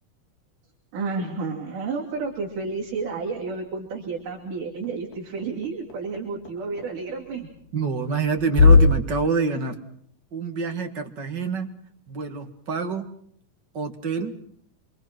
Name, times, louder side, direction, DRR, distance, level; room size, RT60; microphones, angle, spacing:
voice 1, 0.9-7.5, right 4 dB, 55° right, -1 dB, 4.5 m, -31 dB
sound 1, 2.1-8.8, left 5 dB, 85° left, 6.1 m, -25 dB
voice 2, 7.7-9.8 10.3-11.7 12.1-13.1 13.7-14.4, right 5 dB, 40° right, 5 dB, 1.9 m, -27 dB
27.5 x 25.5 x 6.1 m, 0.63 s
omnidirectional pair, 4.4 m